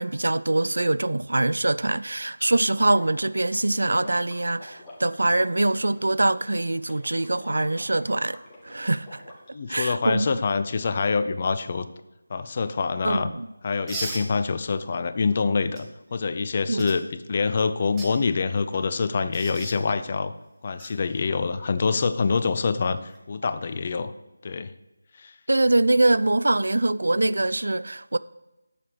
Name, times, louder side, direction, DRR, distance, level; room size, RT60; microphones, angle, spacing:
voice 1, 0.0-9.2 9.7-10.4 13.0-13.5 16.7-16.9 25.5-28.2, right 2 dB, 60° right, 0.3 m, -23 dB
Water / Liquid, 2.7-9.5, left 2 dB, 15° left, 1.4 m, -48 dB
voice 2, 9.5-11.9 12.3-13.3 13.6-20.3 20.6-23.0 23.3-24.1 24.4-24.7 25.2-25.3, left 4 dB, 30° left, 0.5 m, -25 dB
sound 1, 13.9-14.3 15.8-15.9 16.8-17.0 17.8-18.1 19.3-19.8 20.8-20.9 23.0-23.2, right 2 dB, 10° right, 1.0 m, -35 dB
8.3 x 6.9 x 6.2 m
figure-of-eight pair, 160°, 0 cm